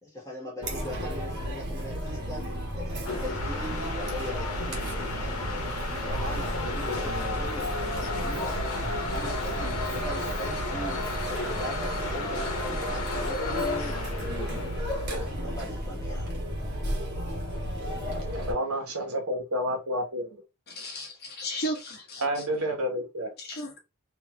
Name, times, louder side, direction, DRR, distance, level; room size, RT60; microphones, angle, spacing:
voice 1, 0.0-5.6 6.1-8.7 9.1-14.0 15.0-16.3, left 1 dB, 15° left, 1.6 m, -40 dB
Chatter, 0.6-18.5, equal, 50° right, 1.3 m, -33 dB
sound 1, 3.1-15.4, left 2 dB, 80° left, 1.1 m, -33 dB
voice 2, 18.3-20.3 22.2-23.3, equal, 80° right, 1.5 m, -29 dB
voice 3, 20.7-22.2 23.4-23.8, equal, 45° left, 1.2 m, -35 dB
3.6 x 2.9 x 3.1 m
head